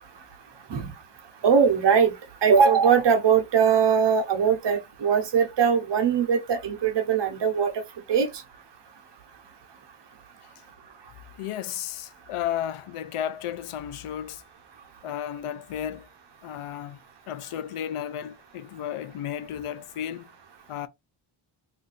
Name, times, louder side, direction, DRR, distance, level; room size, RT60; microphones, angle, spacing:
voice 1, 1.4-2.1 2.4-7.7 8.1-8.3, right 6 dB, 55° right, 0.9 m, -21 dB
voice 2, 11.4-14.4 15.0-16.1 16.4-17.0 17.3-20.3 20.7-20.9, left 10 dB, 90° left, 0.5 m, -33 dB
2.6 x 2.5 x 3.9 m
wide cardioid pair, 145°, 50 cm